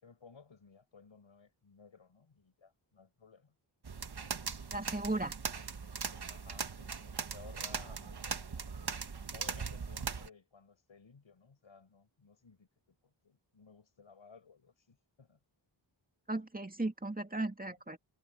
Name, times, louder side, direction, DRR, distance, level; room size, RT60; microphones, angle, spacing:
voice 1, 0.0-3.5 6.3-8.9 9.3-15.4, left 5 dB, 90° left, 7.3 m, -58 dB
sound 1, 3.8-10.3, right 5 dB, 55° right, 1.4 m, -40 dB
voice 2, 4.7-5.4 16.3-18.0, right 2 dB, 20° right, 2.2 m, -36 dB
wide cardioid pair, 90°, 46 cm